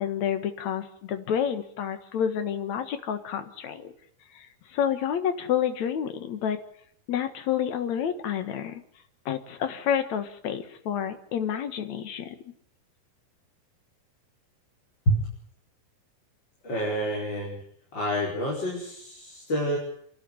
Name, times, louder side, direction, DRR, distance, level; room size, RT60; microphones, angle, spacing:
voice 1, 0.0-3.9 4.3-4.5 4.7-6.6 7.1-8.8 9.3-12.3, left 9 dB, 60° left, 9 dB, 2.6 m, -29 dB
voice 2, 16.6-17.6 17.9-19.8, equal, 30° left, -3 dB, 5.7 m, -28 dB
27.5 x 12.0 x 9.9 m, 0.67 s
omnidirectional pair, 3.9 m